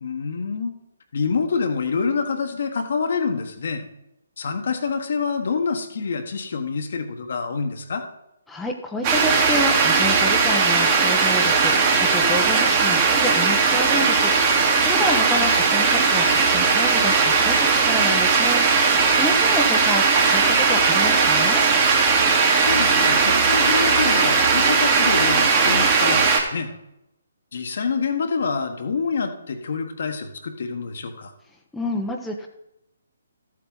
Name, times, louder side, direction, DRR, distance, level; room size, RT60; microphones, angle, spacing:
voice 1, 0.0-0.7 1.1-3.8 4.4-8.0 22.6-26.7 27.5-31.3, left 5 dB, 60° left, 5 dB, 1.4 m, -26 dB
voice 2, 8.5-21.6 31.7-32.5, left 2 dB, 5° left, 0 dB, 1.0 m, -29 dB
sound 1, 9.0-26.4, right 5 dB, 30° right, 2.1 m, -18 dB
13.5 x 7.8 x 4.0 m, 0.87 s
figure-of-eight pair, 140°, 0 cm